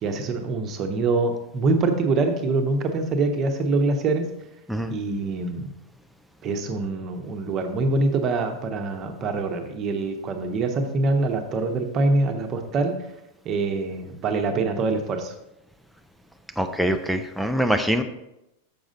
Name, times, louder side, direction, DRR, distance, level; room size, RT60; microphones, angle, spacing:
voice 1, 0.0-4.2 4.9-5.7 6.4-12.9 13.4-15.3, right 3 dB, 30° right, 5 dB, 1.0 m, -24 dB
voice 2, 16.6-18.0, equal, ahead, 6 dB, 0.5 m, -24 dB
7.2 x 6.2 x 3.9 m, 0.88 s
figure-of-eight pair, 90°, 0 cm